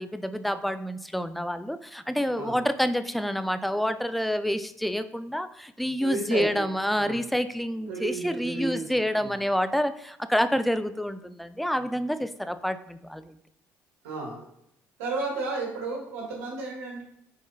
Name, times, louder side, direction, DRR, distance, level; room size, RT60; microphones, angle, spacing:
voice 1, 0.0-13.3, equal, ahead, 11 dB, 0.3 m, -28 dB
voice 2, 6.0-6.7 6.9-7.2 7.9-8.9 9.1-9.4 14.0-14.4 15.0-17.0, right 3 dB, 85° right, -3 dB, 1.3 m, -33 dB
4.8 x 3.5 x 2.7 m, 0.75 s
hypercardioid pair, 60°, 8 cm